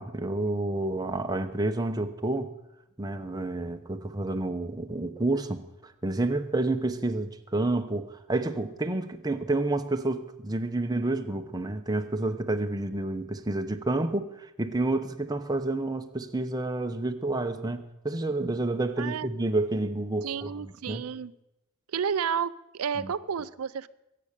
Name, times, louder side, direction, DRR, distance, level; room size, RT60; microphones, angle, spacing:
voice 1, 0.0-2.5 3.0-21.0 23.0-23.1, right 2 dB, 20° right, 6 dB, 0.8 m, -29 dB
voice 2, 19.0-19.3 20.2-21.3 21.9-23.9, right 7 dB, 80° right, 15 dB, 0.5 m, -31 dB
23.0 x 8.6 x 6.7 m, 0.91 s
head